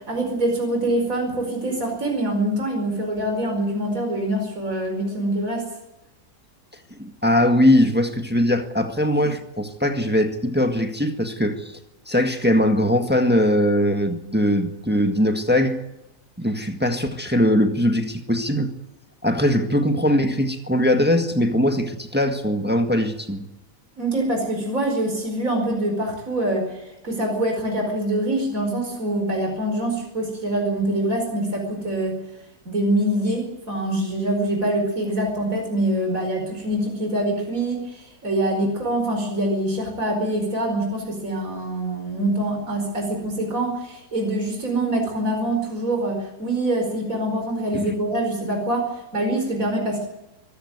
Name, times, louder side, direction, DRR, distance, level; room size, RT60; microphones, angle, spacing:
voice 1, 0.0-5.6 24.0-32.2 32.7-50.1, right 1 dB, 65° right, 3 dB, 5.4 m, -24 dB
voice 2, 7.0-11.7 12.1-15.8 16.4-18.7 19.2-23.5 47.7-47.9, left 1 dB, 5° right, 6 dB, 1.6 m, -21 dB
24.0 x 15.0 x 9.5 m, 0.94 s
omnidirectional pair, 1.6 m